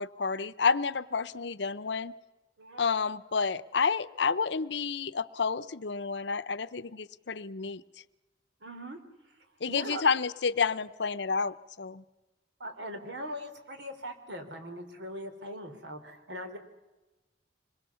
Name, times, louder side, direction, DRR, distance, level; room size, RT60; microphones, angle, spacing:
voice 1, 0.0-2.1 2.8-7.8 9.6-12.0, left 5 dB, 70° left, 14 dB, 0.8 m, -30 dB
voice 2, 2.6-2.9 8.6-9.0 9.2-10.0 12.6-16.6, equal, 75° right, 7 dB, 3.4 m, -41 dB
26.0 x 22.0 x 7.1 m, 1.1 s
head